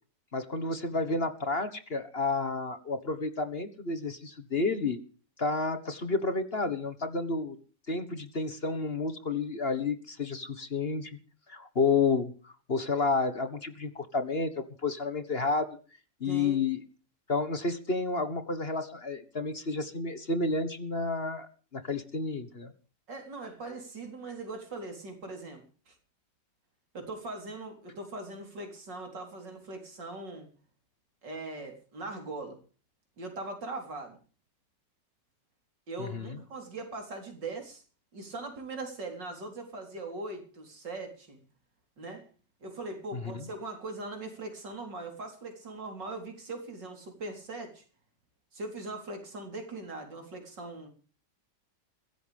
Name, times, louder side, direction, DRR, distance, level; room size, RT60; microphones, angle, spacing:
voice 1, 0.3-5.0 5.4-7.5 7.9-11.1 11.5-15.7 16.2-16.8 17.3-22.7 36.0-36.4 43.1-43.5, left 3 dB, 35° left, 11 dB, 1.6 m, -30 dB
voice 2, 16.2-16.6 23.1-25.9 26.9-30.5 31.2-32.6 33.2-34.2 35.9-37.8 38.1-41.4 42.0-42.3 42.6-47.8 48.5-50.9, right 2 dB, 85° right, 4 dB, 4.7 m, -40 dB
22.5 x 16.5 x 3.5 m, 0.38 s
omnidirectional pair, 1.9 m